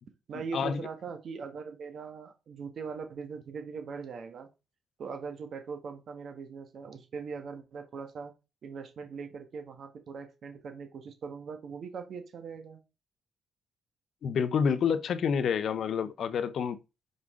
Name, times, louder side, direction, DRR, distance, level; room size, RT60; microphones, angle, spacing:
voice 1, 0.3-4.5 5.0-8.3 8.6-12.8, right 5 dB, 60° right, 1.4 m, -41 dB
voice 2, 14.2-16.8, left 7 dB, 60° left, 0.6 m, -28 dB
5.4 x 4.9 x 3.7 m
cardioid pair, 90°, 0 cm